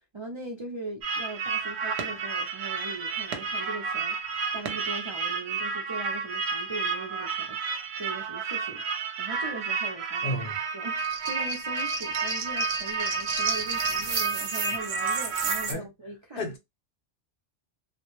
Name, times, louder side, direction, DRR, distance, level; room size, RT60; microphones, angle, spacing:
voice 1, 0.1-8.8 9.2-16.4, right 3 dB, 45° right, 0.4 m, -40 dB
sound 1, 1.0-15.7, right 5 dB, 80° right, 0.8 m, -30 dB
voice 2, 10.2-10.6 15.7-15.9 16.4-16.6, left 1 dB, 60° left, 0.8 m, -31 dB
2.1 x 2.0 x 2.9 m
omnidirectional pair, 1.1 m